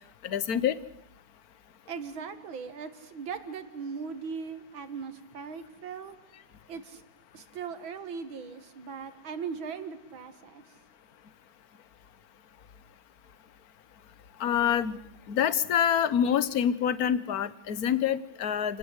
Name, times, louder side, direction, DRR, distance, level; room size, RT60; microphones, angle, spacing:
voice 1, 0.2-0.8 14.4-15.0 15.3-18.8, left 9 dB, 50° left, 16 dB, 1.5 m, -26 dB
voice 2, 1.9-6.2 6.7-7.0 7.3-10.8, right 6 dB, 75° right, 11 dB, 2.6 m, -39 dB
29.0 x 18.5 x 8.2 m, 0.74 s
omnidirectional pair, 2.2 m